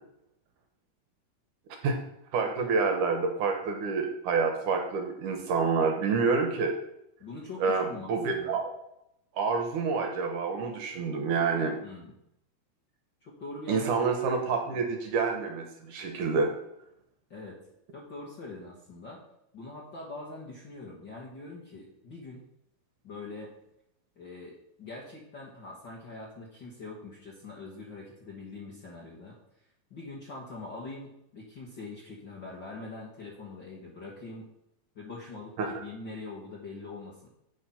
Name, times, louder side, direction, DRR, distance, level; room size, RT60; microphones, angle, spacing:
voice 1, 2.3-6.7 7.6-8.7 9.4-11.8 13.7-16.5 35.6-35.8, right 4 dB, 70° right, 4 dB, 2.3 m, -28 dB
voice 2, 7.2-8.6 11.8-12.1 13.2-14.1 14.5-14.9 17.3-17.6 17.9-19.2 19.5-22.4 23.0-23.5 24.1-34.5 34.9-37.3, left 3 dB, 45° left, -4 dB, 1.5 m, -43 dB
8.5 x 6.3 x 5.6 m, 0.79 s
omnidirectional pair, 4.2 m